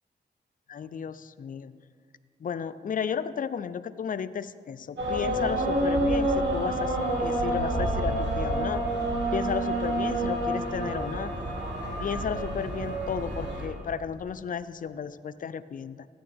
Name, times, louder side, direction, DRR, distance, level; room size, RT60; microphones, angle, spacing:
voice 1, 0.7-1.7 2.4-8.8 9.3-11.3 12.0-16.1, left 7 dB, 50° left, 14 dB, 0.4 m, -33 dB
sound 1, 5.0-13.7, right 1 dB, 80° right, 2.0 m, -28 dB
14.0 x 9.0 x 3.4 m, 2.1 s
cardioid pair, 55°, 19 cm